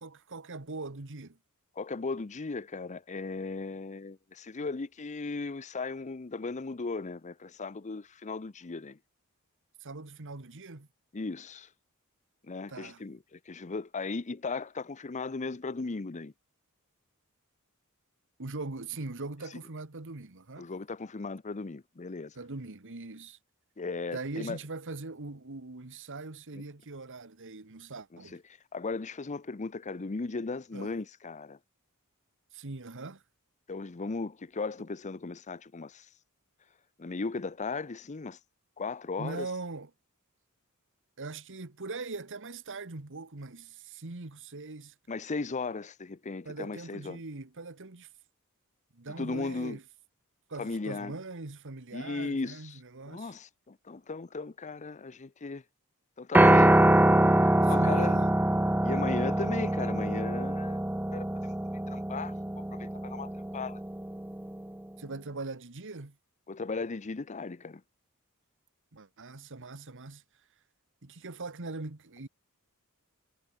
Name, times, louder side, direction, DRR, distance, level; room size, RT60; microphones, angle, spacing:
voice 1, 0.0-1.4 9.8-10.9 12.7-13.1 18.4-20.7 22.3-23.4 24.1-28.4 30.7-30.9 32.5-33.2 39.2-39.9 41.2-44.9 46.4-48.1 48.9-49.8 50.5-53.3 57.6-58.3 65.0-66.2 68.9-70.2 71.0-72.3, right 3 dB, 60° right, 1.6 m, -41 dB
voice 2, 1.8-9.0 11.1-11.7 12.4-16.3 20.6-22.3 23.8-24.6 28.3-28.4 28.7-31.6 33.7-36.1 37.0-38.4 38.8-39.5 45.1-47.2 49.2-49.8 50.6-51.1 51.9-52.8 53.1-55.6 56.2-57.3 57.7-58.2 58.8-60.8 61.1-61.3 61.9-63.8 66.5-67.8, left 3 dB, 30° left, 0.6 m, -36 dB
Piano, 56.3-64.6, right 1 dB, 10° right, 0.6 m, -24 dB
head